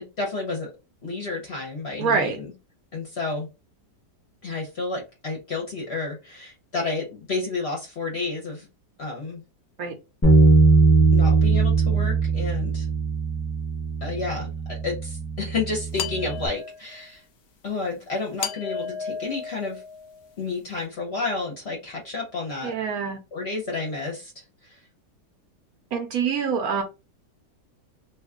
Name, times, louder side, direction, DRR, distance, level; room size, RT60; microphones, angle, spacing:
voice 1, 0.2-0.7 1.0-2.4 2.9-3.5 4.4-8.7 9.0-9.4 11.1-12.9 14.0-17.2 17.6-19.8 20.4-22.7 23.3-24.3 24.7-24.8, left 3 dB, 50° left, 0 dB, 0.9 m, -31 dB
voice 2, 2.0-2.4 9.8-10.0 22.6-23.2 25.9-26.8, right 6 dB, 70° right, 4 dB, 1.0 m, -25 dB
Bass guitar, 10.2-16.5, right 3 dB, 15° left, 0.4 m, -20 dB
sound 1, 16.0-17.1 18.4-20.3, left 6 dB, 85° left, 0.5 m, -34 dB
2.7 x 2.3 x 3.5 m, 0.28 s
omnidirectional pair, 1.8 m